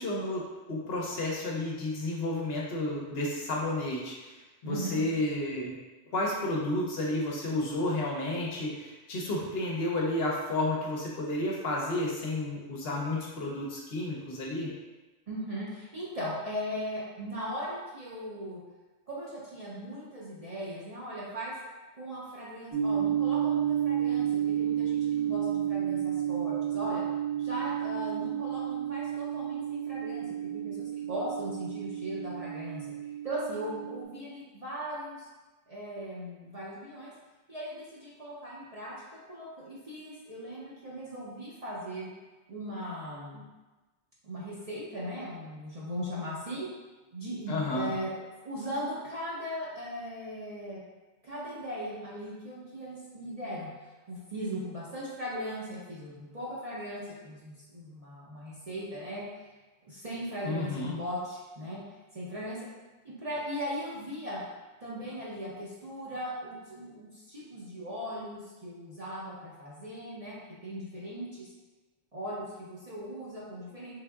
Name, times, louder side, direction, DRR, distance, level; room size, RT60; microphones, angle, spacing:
voice 1, 0.0-5.7 6.1-14.7 47.5-48.0 60.4-61.0, left 2 dB, 60° left, -3 dB, 0.8 m, -31 dB
voice 2, 4.6-5.0 15.3-18.6 19.1-21.5 21.9-27.0 27.4-32.9 33.2-35.3 35.7-37.1 37.5-38.9 39.3-42.1 42.5-43.4 44.2-46.7 47.1-48.1 48.4-50.8 51.2-53.7 54.1-59.5 59.9-61.8 62.1-62.7 63.0-64.4 64.8-70.4 70.6-71.5 72.1-74.0, equal, 40° right, -8 dB, 0.6 m, -38 dB
sound 1, 22.7-34.0, right 10 dB, 10° left, 0.8 m, -31 dB
3.5 x 3.4 x 2.3 m, 1.2 s
omnidirectional pair, 1.2 m